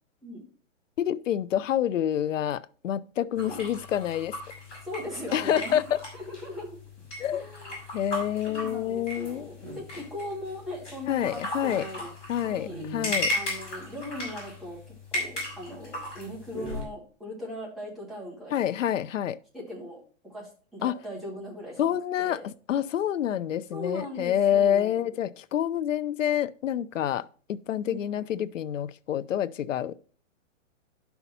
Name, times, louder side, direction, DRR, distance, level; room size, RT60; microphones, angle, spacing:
voice 1, 1.0-4.4 5.3-6.0 7.2-7.4 7.9-9.5 11.1-11.9 12.3-13.3 18.5-19.4 20.8-20.9 21.8-29.9, left 10 dB, 75° left, 0.7 m, -27 dB
sound 1, 3.3-16.8, left 1 dB, 15° left, 4.7 m, -36 dB
voice 2, 4.8-5.8 6.1-6.8 7.3-7.9 8.5-12.1 12.5-12.9 13.3-14.8 15.1-18.6 19.5-22.5 23.7-25.2 27.8-28.2, left 1 dB, ahead, 0.8 m, -39 dB
11.0 x 5.8 x 4.2 m
hypercardioid pair, 175°, 39 cm